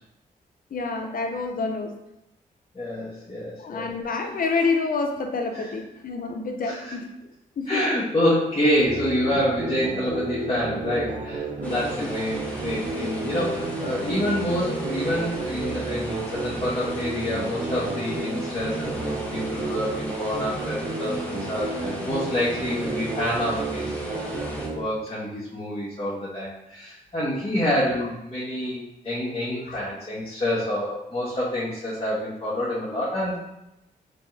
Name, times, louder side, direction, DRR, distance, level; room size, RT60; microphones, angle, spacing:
voice 1, 0.7-1.9 3.6-7.1 7.6-7.8 11.7-12.1 29.7-29.8, left 4 dB, 65° left, 4 dB, 0.7 m, -28 dB
voice 2, 2.7-3.9 5.5-5.7 6.6-6.9 7.7-33.4, left 1 dB, 30° left, -9 dB, 1.5 m, -27 dB
sound 1, 8.8-24.8, right 3 dB, 55° right, 0.8 m, -32 dB
sound 2, 11.6-24.7, equal, 10° left, 1.4 m, -37 dB
4.3 x 3.5 x 3.3 m, 0.89 s
cardioid pair, 60°, 16 cm